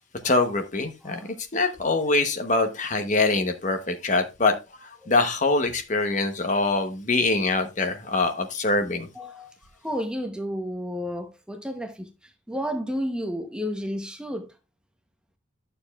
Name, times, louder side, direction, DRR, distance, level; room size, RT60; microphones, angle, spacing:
voice 1, 0.2-4.5 4.8-9.1, left 3 dB, 40° left, 0.9 m, -24 dB
voice 2, 9.1-9.6 9.8-14.5, equal, 5° right, 0.8 m, -32 dB
12.0 x 6.8 x 2.3 m
head